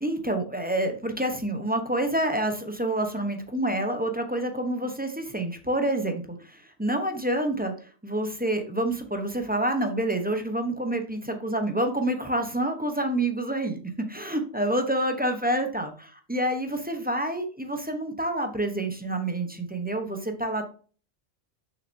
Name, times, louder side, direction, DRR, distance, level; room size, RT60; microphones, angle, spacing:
voice 1, 0.0-13.8 14.1-20.7, right 1 dB, 10° right, 5 dB, 0.8 m, -28 dB
6.5 x 6.1 x 2.7 m, 0.39 s
omnidirectional pair, 1.2 m